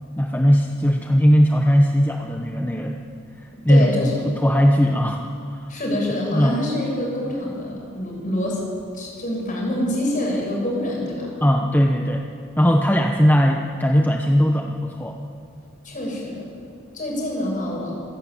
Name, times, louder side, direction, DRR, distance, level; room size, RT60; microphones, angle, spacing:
voice 1, 0.2-3.0 3.4-3.9 4.2-5.7 6.3-6.6 11.4-12.3 12.6-15.2, equal, 10° left, 2 dB, 1.0 m, -19 dB
voice 2, 3.7-4.3 5.7-8.6 8.9-11.3 15.8-16.4 16.9-17.9, left 1 dB, 40° left, -2 dB, 6.8 m, -26 dB
26.5 x 11.5 x 8.8 m, 2.5 s
head